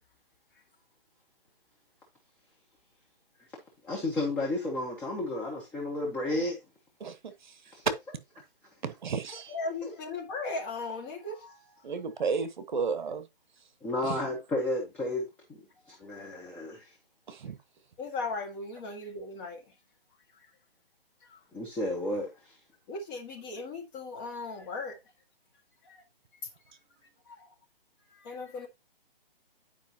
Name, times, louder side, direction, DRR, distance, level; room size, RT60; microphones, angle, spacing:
voice 1, 3.8-6.6 7.7-7.8 13.8-15.6 15.9-16.9 21.5-22.5, left 2 dB, 5° left, 0.7 m, -32 dB
voice 2, 7.0-7.7 8.8-9.6 11.8-13.3 14.0-14.2 17.3-17.5, right 5 dB, 50° right, 1.1 m, -33 dB
voice 3, 9.5-11.8 18.0-19.6 21.2-21.4 22.9-25.0 25.8-26.0 27.3-27.5 28.1-28.7, left 3 dB, 25° left, 1.7 m, -37 dB
10.0 x 4.9 x 2.8 m
hypercardioid pair, 150°, 30 cm